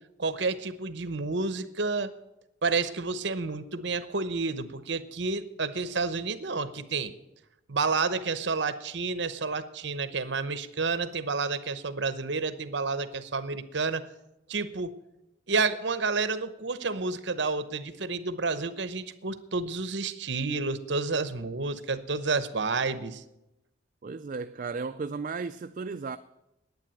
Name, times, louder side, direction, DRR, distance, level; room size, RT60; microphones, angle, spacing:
voice 1, 0.2-2.1 2.6-7.1 7.7-14.1 14.5-14.9 15.5-23.2, right 4 dB, 65° right, 0.9 m, -30 dB
voice 2, 24.0-26.2, right 4 dB, 40° right, 0.4 m, -34 dB
10.5 x 9.1 x 8.8 m
head